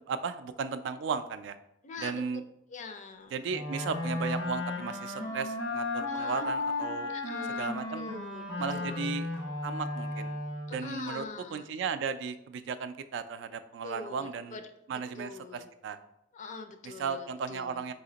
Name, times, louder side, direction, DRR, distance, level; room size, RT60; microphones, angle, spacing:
voice 1, 0.1-1.6 2.0-2.4 3.3-7.1 7.6-8.1 8.6-9.3 9.6-10.3 10.7-11.3 11.5-14.6 14.9-16.0 16.8-17.9, right 5 dB, 65° right, 11 dB, 0.3 m, -35 dB
voice 2, 1.8-2.2 2.7-3.3 5.2-5.4 6.1-6.4 7.1-9.1 10.7-11.7 13.8-14.6 15.2-15.7 16.3-17.8, left 3 dB, 40° left, 7 dB, 0.4 m, -44 dB
Wind instrument woodwind instrument, 3.5-10.9, left 2 dB, 90° left, 1.2 m, -34 dB
4.1 x 2.8 x 3.8 m, 0.79 s
head